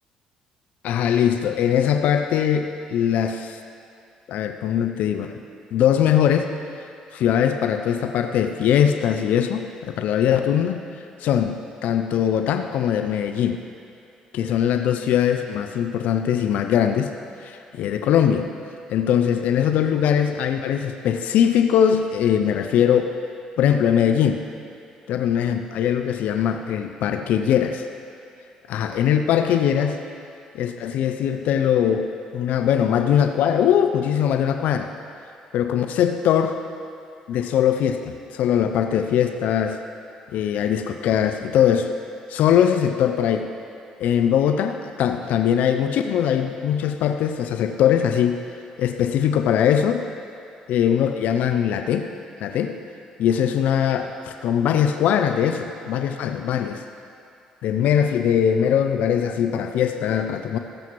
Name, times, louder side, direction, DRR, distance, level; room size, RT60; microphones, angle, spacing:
voice 1, 0.8-3.6 4.3-5.4 5.7-6.5 7.1-10.8 11.2-13.6 14.3-17.1 17.4-18.5 18.9-23.1 23.6-24.4 25.1-27.9 28.7-30.0 30.5-34.9 35.5-36.6 37.3-39.8 40.3-41.9 42.3-43.5 44.0-48.4 48.8-50.0 50.7-52.1 52.4-52.8 53.2-56.8 57.6-60.6, left 9 dB, 65° left, 6 dB, 0.5 m, -21 dB
19.5 x 7.2 x 3.1 m, 2.6 s
hypercardioid pair, 50°, 3 cm